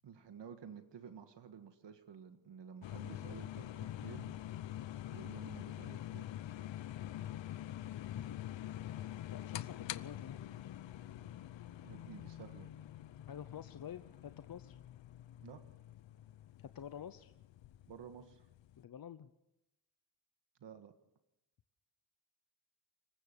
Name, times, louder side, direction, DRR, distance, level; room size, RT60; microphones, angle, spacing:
voice 1, 0.0-4.3 5.1-6.3 11.8-12.7 15.4-15.6 17.9-18.5 20.6-20.9, right 7 dB, 75° right, 8 dB, 1.6 m, -52 dB
sound 1, 2.8-18.8, left 12 dB, 90° left, 0.8 m, -46 dB
voice 2, 9.3-10.5 13.3-14.8 16.6-17.3 18.8-19.3, left 9 dB, 55° left, 11 dB, 0.8 m, -48 dB
26.0 x 15.0 x 6.9 m, 0.89 s
wide cardioid pair, 125°, 43 cm